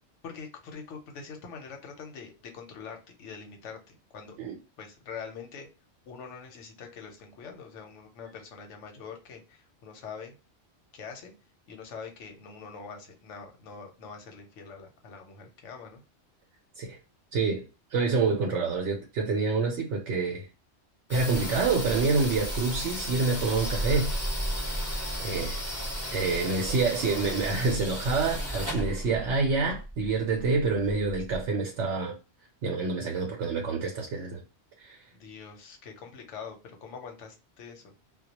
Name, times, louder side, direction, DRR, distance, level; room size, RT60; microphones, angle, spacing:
voice 1, 0.2-4.4 4.8-5.7 6.1-10.3 10.9-11.3 11.7-16.0 35.1-37.9, left 5 dB, 85° left, 1.0 m, -44 dB
voice 2, 17.3-17.6 17.9-20.5 21.1-24.1 25.2-25.6 26.1-32.2 32.6-34.4 34.8-35.0, right 4 dB, 80° right, 0.9 m, -27 dB
sound 1, 21.1-31.4, equal, 15° left, 0.7 m, -34 dB
2.2 x 2.1 x 2.8 m
omnidirectional pair, 1.2 m